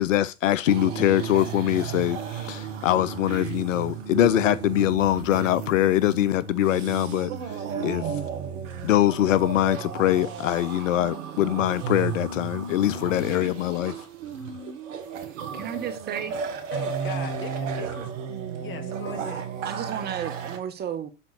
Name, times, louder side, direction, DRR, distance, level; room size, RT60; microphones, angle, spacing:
voice 1, 0.0-8.2 8.8-14.0, left 13 dB, 65° left, 0.6 m, -23 dB
sound 1, 0.7-20.6, right 7 dB, 60° right, 1.8 m, -33 dB
voice 2, 15.3-16.6 19.6-21.1, right 9 dB, 25° right, 0.8 m, -33 dB
voice 3, 16.7-18.1 18.5-19.5, left 8 dB, 30° left, 1.4 m, -39 dB
7.4 x 3.9 x 6.5 m
hypercardioid pair, 95°, 42 cm